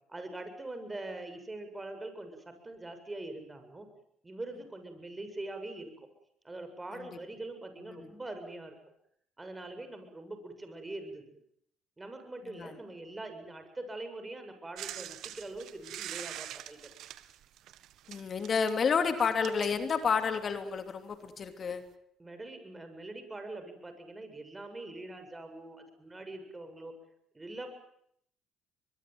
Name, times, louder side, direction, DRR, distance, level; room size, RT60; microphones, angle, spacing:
voice 1, 0.1-3.9 4.2-6.1 6.4-8.7 9.4-11.2 12.0-16.8 22.2-26.9 27.3-27.7, right 2 dB, 20° right, 7 dB, 7.5 m, -43 dB
sound 1, 14.8-20.5 21.4-21.5, right 12 dB, 70° right, 1.7 m, -44 dB
voice 2, 18.1-21.8, left 6 dB, 45° left, 8 dB, 2.9 m, -30 dB
23.5 x 22.0 x 9.4 m, 0.72 s
supercardioid pair, 70°, 0 cm